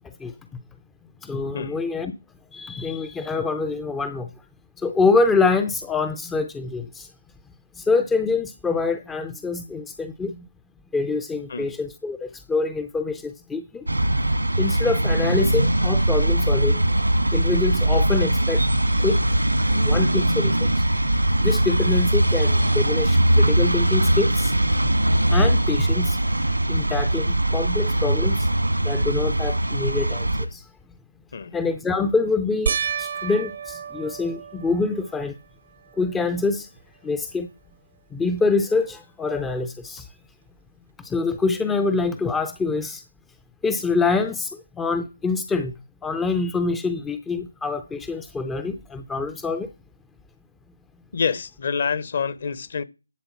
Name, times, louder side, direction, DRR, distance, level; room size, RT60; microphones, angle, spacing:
voice 1, 1.2-2.1 2.5-4.3 4.8-7.1 7.8-10.5 10.9-13.9 14.6-16.8 17.3-18.6 18.9-19.2 19.7-20.9 21.4-24.5 25.3-26.2 26.7-28.5 28.8-30.6 31.5-35.3 36.0-36.7 37.0-37.5 38.1-40.1 41.0-43.0 43.6-45.7 46.0-49.7, left 4 dB, 5° left, 0.5 m, -25 dB
sound 1, 13.9-30.5, right 1 dB, 85° right, 1.7 m, -21 dB
sound 2, 32.7-35.3 35.9-36.4 36.8-36.9 40.1-40.2, right 7 dB, 40° right, 0.5 m, -31 dB
voice 2, 51.1-52.8, left 6 dB, 45° left, 0.8 m, -27 dB
11.5 x 4.0 x 6.9 m
figure-of-eight pair, 150°, 0 cm